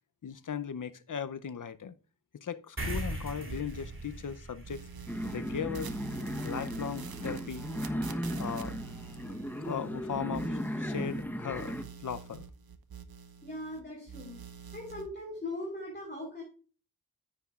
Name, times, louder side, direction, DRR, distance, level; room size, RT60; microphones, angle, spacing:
voice 1, 0.2-1.9 2.3-4.8 5.2-5.9 6.4-7.7 8.4-8.8 9.6-11.8 12.0-12.4, left 7 dB, 55° left, 0.7 m, -37 dB
sound 1, 2.8-9.6, right 1 dB, 30° right, 2.6 m, -43 dB
sound 2, 3.5-4.4 4.6-11.2 11.5-13.8 14.1-15.1, right 7 dB, 65° right, 0.9 m, -47 dB
sound 3, 5.1-11.8, equal, 5° left, 1.0 m, -36 dB
voice 2, 13.4-14.4 14.7-16.4, left 1 dB, 25° left, 4.0 m, -39 dB
9.7 x 9.2 x 2.4 m
wide cardioid pair, 65°, 38 cm